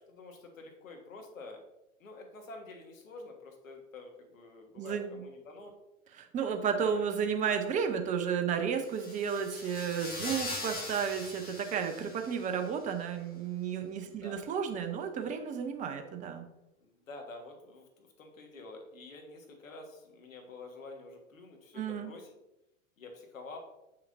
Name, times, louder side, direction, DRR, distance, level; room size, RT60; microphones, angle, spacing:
voice 1, 0.0-1.6 2.0-5.8 6.4-7.0 10.2-10.5 14.0-14.4 16.8-22.3 23.0-23.6, left 3 dB, 75° left, 3 dB, 1.6 m, -48 dB
voice 2, 4.8-5.2 6.2-16.5 21.8-22.1, right 7 dB, 20° right, 6 dB, 0.6 m, -32 dB
sound 1, 8.8-12.7, left 2 dB, 20° left, 2.1 m, -41 dB
7.1 x 5.7 x 2.6 m, 0.93 s
figure-of-eight pair, 100°, 40 cm